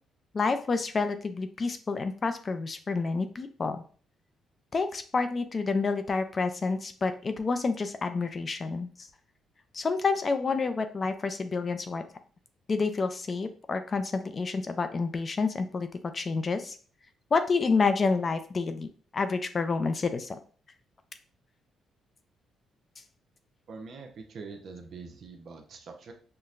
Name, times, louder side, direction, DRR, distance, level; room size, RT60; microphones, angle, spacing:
voice 1, 0.3-3.8 4.7-9.1 9.7-12.0 12.7-15.9 16.1-16.8 17.3-20.4, left 4 dB, 35° left, 9 dB, 0.4 m, -29 dB
voice 2, 23.7-26.1, right 4 dB, 60° right, 3 dB, 0.7 m, -44 dB
5.6 x 2.1 x 2.5 m, 0.42 s
cardioid pair, 90°, 0 cm